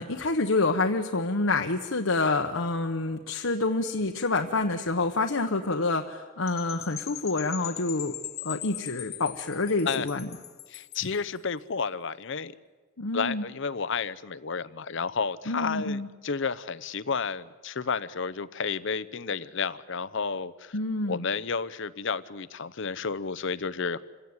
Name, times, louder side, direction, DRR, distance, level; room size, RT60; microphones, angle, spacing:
voice 1, 0.0-8.1 8.4-10.3 13.0-13.4 15.5-16.1 20.7-21.2, left 3 dB, 80° left, 3 dB, 1.2 m, -27 dB
Percussion / Wind chime, 6.5-11.2, left 13 dB, 50° left, 1.1 m, -40 dB
voice 2, 10.7-12.5 13.1-20.8 21.1-24.0, left 5 dB, 65° left, 17 dB, 0.8 m, -31 dB
27.0 x 17.0 x 9.5 m, 1.4 s
head